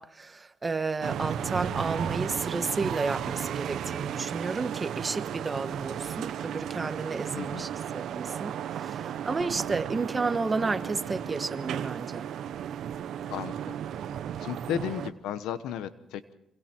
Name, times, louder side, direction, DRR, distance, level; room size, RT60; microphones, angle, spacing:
voice 1, 0.0-12.3, right 4 dB, 25° right, 1.4 m, -32 dB
sound 1, 1.0-15.1, right 9 dB, 75° right, 1.0 m, -34 dB
voice 2, 7.4-7.7 13.3-13.7 14.4-16.2, left 10 dB, 90° left, 1.1 m, -34 dB
26.5 x 25.5 x 4.6 m
cardioid pair, 90°, 0 cm